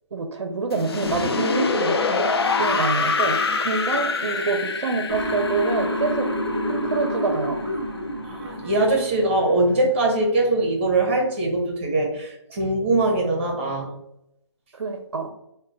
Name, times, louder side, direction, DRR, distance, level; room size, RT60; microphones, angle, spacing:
voice 1, 0.1-2.2 2.6-6.3 6.7-7.6 14.7-15.3, right 4 dB, 65° right, 4 dB, 0.4 m, -26 dB
sound 1, 0.7-7.6, left 4 dB, 55° left, 0.4 m, -25 dB
Motor vehicle (road) / Siren, 5.1-9.2, left 1 dB, 5° left, 1.5 m, -28 dB
voice 2, 8.2-13.9, right 2 dB, 25° right, 0 dB, 0.8 m, -22 dB
3.0 x 2.1 x 3.8 m, 0.81 s
hypercardioid pair, 170°, 15 cm